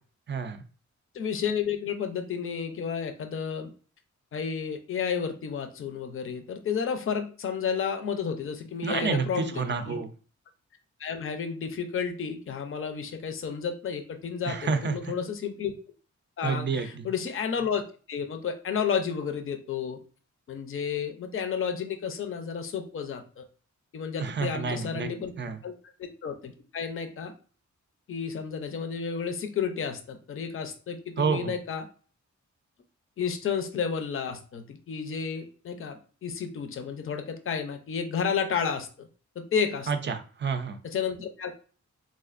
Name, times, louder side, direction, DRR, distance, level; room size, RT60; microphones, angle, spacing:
voice 1, 0.3-0.6 8.8-10.1 14.5-15.0 16.4-17.0 24.2-25.1 25.4-25.6 31.2-31.5 39.9-40.8, right 5 dB, 40° right, 9 dB, 0.4 m, -29 dB
voice 2, 1.1-3.7 4.3-10.0 11.0-15.7 16.4-17.8 18.1-20.0 20.5-23.5 23.9-25.3 25.6-25.7 26.0-27.3 28.1-31.9 33.2-39.1 39.4-39.9 40.8-41.5, left 6 dB, 45° left, 6 dB, 0.5 m, -31 dB
4.2 x 2.4 x 2.4 m, 0.39 s
wide cardioid pair, 130°, 30 cm